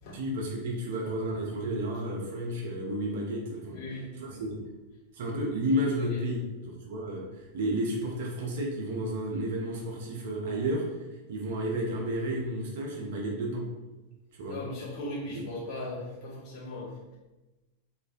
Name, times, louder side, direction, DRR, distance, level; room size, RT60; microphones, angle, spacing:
voice 1, 0.1-3.8 4.1-4.6 5.1-13.7 14.4-14.6 15.2-15.3, right 1 dB, 55° right, -1 dB, 0.4 m, -32 dB
voice 2, 3.7-4.4 6.1-6.2 14.5-17.2, left 1 dB, 30° left, -10 dB, 1.3 m, -38 dB
2.4 x 2.1 x 2.4 m, 1.1 s
figure-of-eight pair, 90°, 0 cm